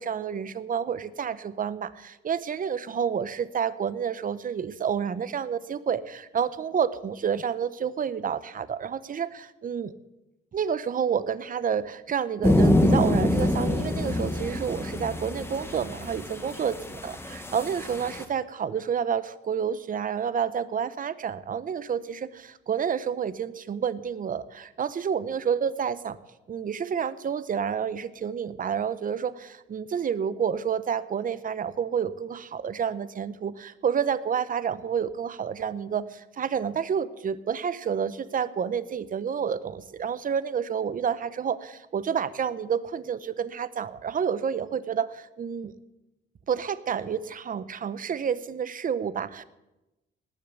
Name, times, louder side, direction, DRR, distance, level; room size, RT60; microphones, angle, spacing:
voice 1, 0.0-9.9 10.5-26.2 26.5-45.7 46.5-49.4, right 7 dB, 45° right, 15 dB, 0.9 m, -29 dB
sound 1, 12.4-18.2, left 1 dB, 10° left, 1.6 m, -25 dB
19.0 x 7.0 x 8.0 m, 0.99 s
cardioid pair, 90°, 20 cm